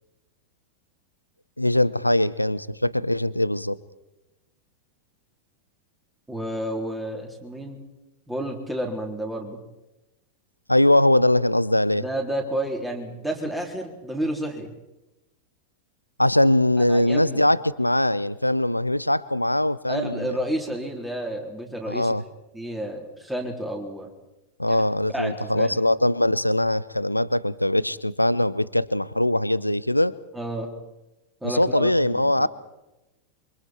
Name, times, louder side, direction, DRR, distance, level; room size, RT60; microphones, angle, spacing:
voice 1, 1.6-3.8 10.7-12.0 16.2-20.4 21.9-22.2 24.6-30.2 31.4-32.5, left 1 dB, 85° left, 18 dB, 0.6 m, -21 dB
voice 2, 6.3-7.8 8.3-9.6 12.0-14.7 16.9-17.4 19.9-22.1 22.5-24.1 24.7-24.8 25.1-25.8 30.3-30.7 31.4-32.5, right 1 dB, 5° right, 1 dB, 3.9 m, -30 dB
28.0 x 24.5 x 4.6 m, 0.97 s
figure-of-eight pair, 90°, 0 cm